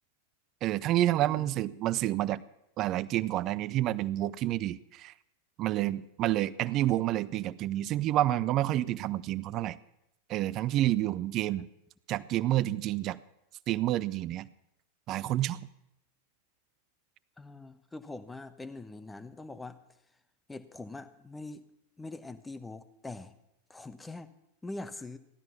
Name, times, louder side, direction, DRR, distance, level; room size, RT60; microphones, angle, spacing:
voice 1, 0.6-2.4 2.8-5.1 5.6-9.8 10.3-11.7 12.1-13.2 13.7-14.5 15.1-15.6, right 14 dB, 35° right, 18 dB, 0.5 m, -29 dB
voice 2, 17.4-19.8 20.5-21.7 22.0-23.3 23.7-24.3 24.6-25.2, left 2 dB, 10° left, 13 dB, 1.0 m, -43 dB
16.0 x 12.5 x 5.8 m, 0.82 s
figure-of-eight pair, 90°, 0 cm